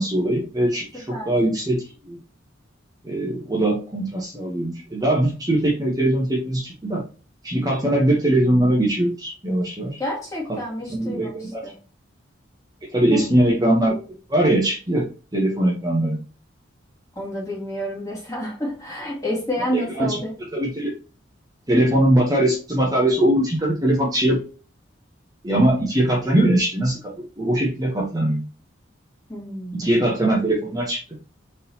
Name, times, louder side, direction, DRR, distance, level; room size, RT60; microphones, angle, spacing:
voice 1, 0.0-1.8 2.1-2.2 3.0-7.0 7.4-10.0 10.9-11.6 12.9-14.0 14.3-15.0 15.3-16.2 19.7-20.2 20.5-20.9 21.7-24.4 25.4-27.0 27.4-28.4 29.7-31.0, right 1 dB, 20° right, -3 dB, 0.9 m, -21 dB
voice 2, 10.0-11.8 13.1-13.2 17.2-20.3 29.3-29.9, equal, 15° left, -3 dB, 1.9 m, -29 dB
4.0 x 3.7 x 2.8 m, 0.36 s
head